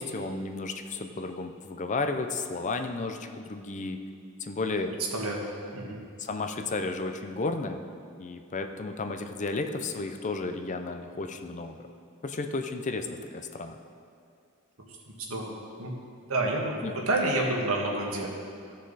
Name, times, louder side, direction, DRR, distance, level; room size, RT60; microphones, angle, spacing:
voice 1, 0.0-4.0 4.4-5.0 6.2-7.8 8.2-11.8 12.2-13.8 16.8-16.9, left 3 dB, 35° left, 6 dB, 0.5 m, -33 dB
voice 2, 5.1-5.4 5.7-6.0 15.1-15.9 16.3-18.3, right 2 dB, 90° right, -1 dB, 1.5 m, -29 dB
15.0 x 6.3 x 4.0 m, 2.4 s
head